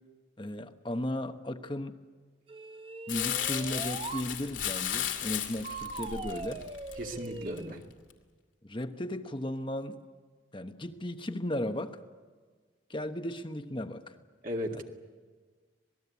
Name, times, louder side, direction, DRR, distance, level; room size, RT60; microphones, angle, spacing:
voice 1, 0.4-2.0 3.1-6.6 8.6-10.0 10.5-12.0 12.9-14.1 14.7-14.8, left 1 dB, 25° left, 8 dB, 1.1 m, -35 dB
sound 1, 2.5-4.3 5.6-7.7, right 3 dB, 30° right, 0.8 m, -41 dB
Crumpling crinkling, 3.1-7.6 8.1-8.2, left 10 dB, 80° left, 2.6 m, -35 dB
voice 2, 7.0-7.8 14.4-14.8, equal, 45° right, 2 dB, 2.0 m, -36 dB
26.0 x 20.0 x 8.4 m, 1.4 s
head